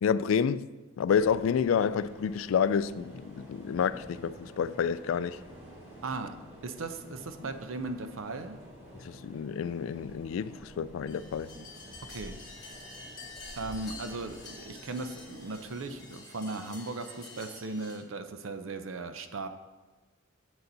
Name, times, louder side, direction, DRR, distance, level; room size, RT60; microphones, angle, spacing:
voice 1, 0.0-0.7 1.0-5.4 9.0-11.5, left 7 dB, 80° left, 0.3 m, -29 dB
sound 1, 1.1-16.0, equal, 30° right, 2.9 m, -50 dB
voice 2, 6.0-8.6 12.1-12.4 13.6-19.5, right 3 dB, 80° right, 0.6 m, -37 dB
sound 2, 11.1-18.0, left 3 dB, 20° left, 2.3 m, -48 dB
7.7 x 7.0 x 4.0 m
head